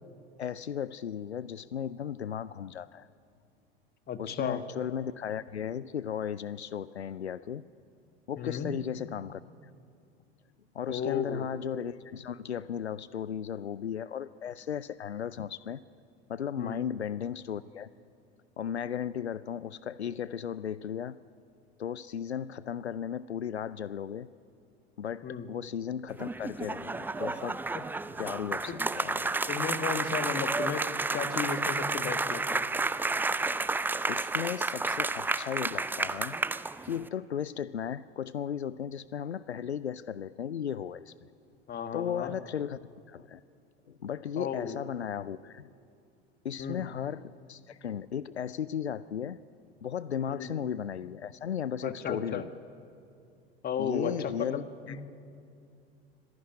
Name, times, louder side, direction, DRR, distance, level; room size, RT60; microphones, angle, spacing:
voice 1, 0.4-3.1 4.2-7.6 8.3-9.4 10.7-15.8 16.3-17.9 18.6-21.2 21.8-24.3 25.0-27.6 28.2-29.3 34.1-36.4 36.8-41.1 41.9-42.8 43.1-43.4 43.9-45.7 46.4-49.4 49.8-52.5 53.8-55.0, left 8 dB, 85° left, 18 dB, 0.5 m, -35 dB
voice 2, 4.1-4.6 8.4-8.7 10.9-11.4 16.6-16.8 25.2-25.5 27.7-27.8 28.7-28.8 29.5-32.6 41.7-42.3 44.4-44.8 46.6-46.8 50.3-50.5 51.8-52.4 53.6-55.0, left 7 dB, 30° left, 9 dB, 1.7 m, -34 dB
sound 1, 26.1-37.1, right 3 dB, 5° right, 0.5 m, -31 dB
24.5 x 15.5 x 9.6 m, 2.4 s
figure-of-eight pair, 75°, 32 cm